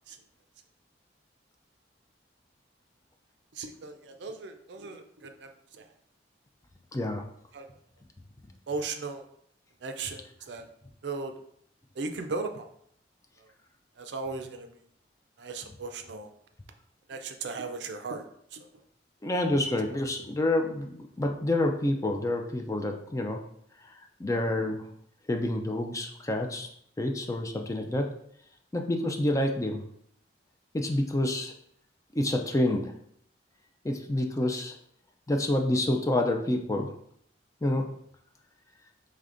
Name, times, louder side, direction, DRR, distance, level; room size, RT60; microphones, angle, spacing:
voice 1, 3.5-5.9 7.5-7.7 8.7-9.3 9.8-10.7 11.0-11.3 12.0-12.7 13.4-13.5 14.0-14.8 15.4-16.3 17.1-18.7 19.9-20.1, right 3 dB, 70° right, 7 dB, 0.4 m, -37 dB
voice 2, 6.9-7.2 19.2-23.4 24.2-24.9 25.3-26.7 27.0-28.1 28.7-29.8 30.7-31.5 32.1-32.9 33.8-34.7 35.3-36.9 37.6-37.9, left 1 dB, 20° left, 4 dB, 0.4 m, -28 dB
4.9 x 3.2 x 2.5 m, 0.68 s
head